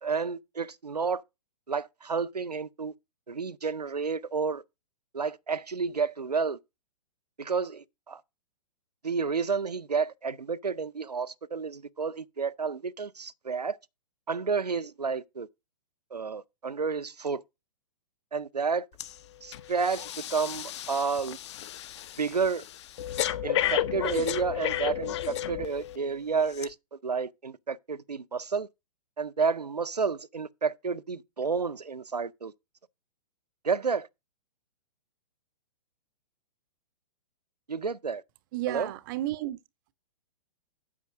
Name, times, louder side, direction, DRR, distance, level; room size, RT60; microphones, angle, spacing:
voice 1, 0.0-1.2 1.7-2.9 3.3-4.6 5.1-6.6 7.4-8.2 9.0-13.8 14.3-15.5 16.1-17.4 18.3-18.9 19.4-21.4 22.2-22.6 23.4-26.8 27.0-28.7 29.2-32.5 33.6-34.1 37.7-38.2 38.7-38.9, right 5 dB, 85° right, 0.5 m, -30 dB
Breathing, 19.0-19.2 19.5-26.0 26.5-26.7, left 11 dB, 45° left, 0.9 m, -32 dB
voice 2, 38.5-39.6, right 15 dB, 35° right, 0.6 m, -32 dB
8.5 x 5.8 x 5.1 m
figure-of-eight pair, 115°, 20 cm